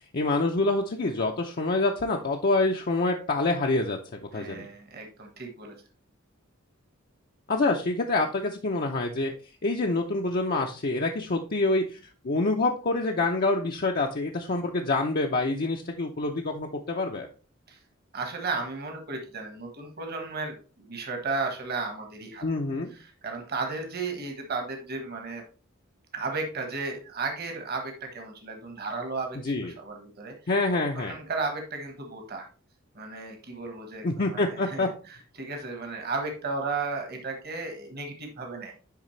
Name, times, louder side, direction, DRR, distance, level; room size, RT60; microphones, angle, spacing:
voice 1, 0.1-4.0 4.3-4.7 7.5-9.3 9.6-12.0 12.2-17.3 22.4-22.9 29.4-29.7 30.5-31.2 34.0-34.9, left 2 dB, 45° left, 1 dB, 0.6 m, -26 dB
voice 2, 4.3-5.7 17.7-17.8 18.1-22.4 22.9-25.4 26.1-29.4 29.8-30.3 30.9-32.5 32.9-38.7, right 3 dB, 50° right, 3 dB, 1.4 m, -34 dB
10.5 x 3.5 x 3.2 m, 0.35 s
head